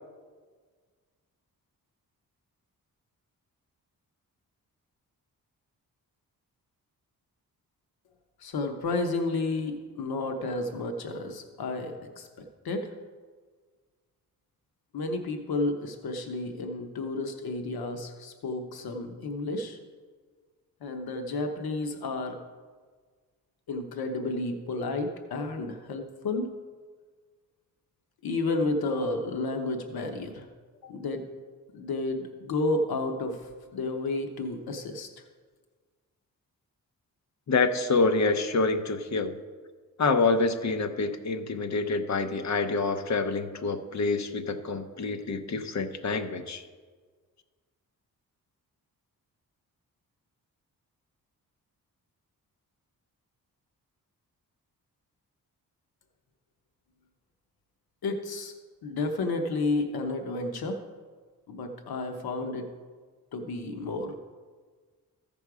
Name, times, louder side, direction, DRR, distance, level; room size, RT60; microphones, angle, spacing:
voice 1, 8.4-12.9 14.9-19.8 20.8-22.4 23.7-26.5 28.2-30.5 30.8-31.3 31.7-35.1 58.0-58.5 58.8-60.8 61.5-62.7 63.3-64.1, left 2 dB, 85° left, 5 dB, 0.9 m, -31 dB
voice 2, 37.5-39.3 40.0-46.6, left 3 dB, 50° left, 9 dB, 0.8 m, -27 dB
14.5 x 5.4 x 4.8 m, 1.5 s
wide cardioid pair, 135°, 36 cm